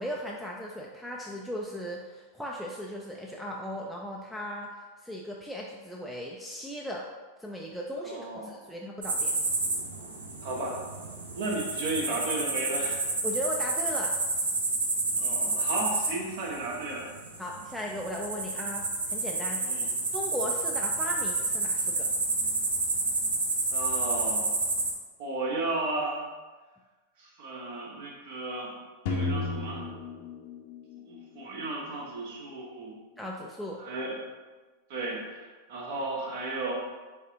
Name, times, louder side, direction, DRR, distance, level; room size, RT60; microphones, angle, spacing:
voice 1, 0.0-7.1 7.4-9.3 13.2-14.2 17.4-19.9 20.1-22.1 33.2-33.8, equal, ahead, -3 dB, 0.4 m, -37 dB
voice 2, 8.0-8.7 10.4-10.8 11.3-13.0 15.2-17.1 19.6-19.9 23.7-24.7 25.2-26.2 27.2-28.7 29.0-29.8 31.1-32.9 33.8-34.2 34.9-36.7, right 2 dB, 50° right, -2 dB, 1.0 m, -34 dB
sound 1, 9.0-24.9, right 3 dB, 70° right, 0.6 m, -30 dB
sound 2, 29.1-31.2, left 3 dB, 50° left, 0.6 m, -32 dB
4.6 x 3.5 x 2.8 m, 1.3 s
figure-of-eight pair, 90°, 0 cm